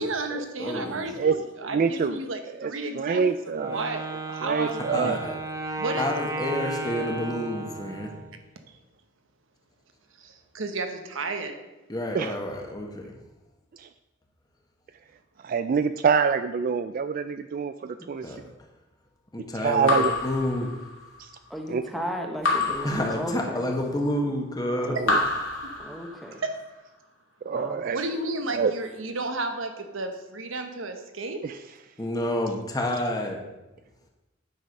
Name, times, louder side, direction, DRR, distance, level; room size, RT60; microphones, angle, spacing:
voice 1, 0.0-3.2 3.7-5.1 5.8-6.0 10.2-11.5 27.9-31.4, right 2 dB, 85° right, 6 dB, 1.2 m, -32 dB
voice 2, 0.6-1.2 4.9-5.3 5.7-8.1 11.9-13.1 18.2-18.4 19.3-19.9 20.2-20.7 22.8-25.0 32.0-33.4, left 1 dB, 20° left, 1 dB, 1.4 m, -29 dB
voice 3, 1.7-2.2 2.6-3.8 4.4-5.2 12.1-12.4 13.8-13.9 15.4-18.4 19.5-20.1 21.2-21.3 21.7-21.8 24.9-25.2 27.4-28.0 28.5-28.7 31.4-31.6, right 6 dB, 45° right, 10 dB, 0.3 m, -26 dB
Wind instrument woodwind instrument, 3.5-8.4, right 2 dB, 15° right, 0.8 m, -34 dB
Raindrop / Drip, 19.9-21.2 22.4-23.8 25.0-26.4, left 3 dB, 90° left, 2.5 m, -28 dB
voice 4, 21.5-23.6 24.8-25.2 25.8-26.4 27.5-27.8, equal, ahead, 2 dB, 1.1 m, -35 dB
9.4 x 6.4 x 5.3 m, 1.0 s
head